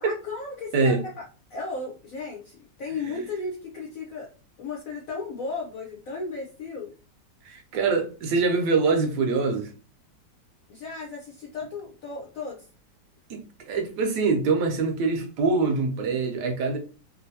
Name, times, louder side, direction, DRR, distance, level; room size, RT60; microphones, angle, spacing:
voice 1, 0.0-1.2 1.5-4.3 4.6-6.9 10.7-12.7, left 3 dB, 65° left, -2 dB, 0.9 m, -35 dB
voice 2, 7.4-9.7 13.3-16.8, right 4 dB, 70° right, 3 dB, 1.2 m, -24 dB
3.1 x 2.6 x 2.7 m, 0.36 s
omnidirectional pair, 2.0 m